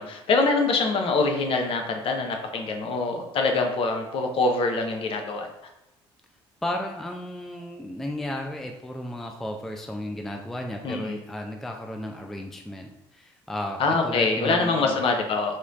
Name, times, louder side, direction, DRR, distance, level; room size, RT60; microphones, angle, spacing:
voice 1, 0.0-5.5 10.8-11.2 13.8-15.6, left 3 dB, 40° left, 3 dB, 0.6 m, -24 dB
voice 2, 6.6-15.0, left 1 dB, ahead, 3 dB, 0.4 m, -34 dB
4.2 x 3.0 x 2.4 m, 0.90 s
figure-of-eight pair, 50°, 14 cm